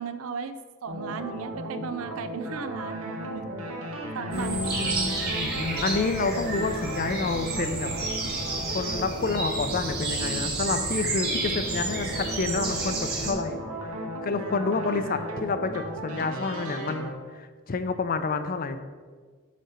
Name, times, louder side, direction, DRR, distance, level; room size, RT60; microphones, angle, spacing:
voice 1, 0.0-3.9 4.1-5.2, right 5 dB, 65° right, 11 dB, 0.4 m, -36 dB
sound 1, 0.9-17.1, right 1 dB, 85° right, 1.2 m, -36 dB
voice 2, 4.3-7.9 8.7-13.6 14.2-18.8, left 3 dB, 40° left, 10 dB, 0.5 m, -29 dB
sound 2, 4.3-13.3, right 3 dB, 45° right, 1.5 m, -31 dB
7.3 x 4.2 x 5.6 m, 1.5 s
head